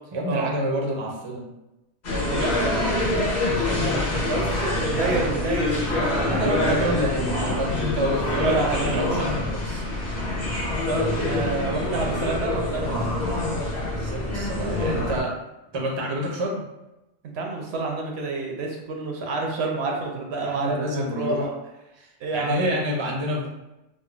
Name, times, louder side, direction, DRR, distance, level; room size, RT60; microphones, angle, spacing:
voice 1, 0.1-1.4 3.0-4.1 6.3-9.8 14.0-15.4 15.7-16.6 20.4-21.5 22.0-23.5, equal, 40° right, -1 dB, 0.4 m, -28 dB
sound 1, 2.0-15.2, left 2 dB, 45° left, 0.8 m, -25 dB
voice 2, 2.3-2.8 4.1-6.6 8.4-9.1 10.8-13.0 17.3-21.5 22.2-22.8, right 3 dB, 75° right, 1 dB, 0.8 m, -28 dB
3.6 x 2.0 x 2.3 m, 0.95 s
omnidirectional pair, 1.1 m